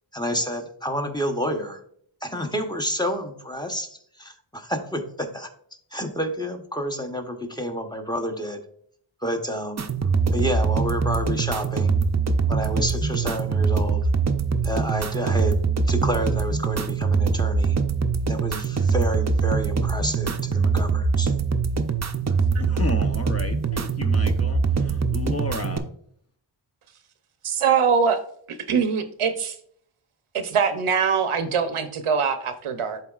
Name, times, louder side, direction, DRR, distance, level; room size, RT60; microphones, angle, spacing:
voice 1, 0.1-1.8 2.2-5.5 5.9-8.6 9.2-9.9 10.3-12.0 12.5-14.0 14.6-15.6 15.9-17.8 18.3-21.3, equal, 10° left, 5 dB, 0.8 m, -29 dB
sound 1, 9.8-25.8, right 5 dB, 35° right, 0.5 m, -23 dB
voice 2, 22.6-25.9, left 2 dB, 30° left, 7 dB, 0.6 m, -32 dB
voice 3, 27.4-28.2 28.7-29.6 30.3-33.0, right 6 dB, 90° right, 9 dB, 0.8 m, -22 dB
11.5 x 3.9 x 2.4 m, 0.63 s
wide cardioid pair, 85°, 49 cm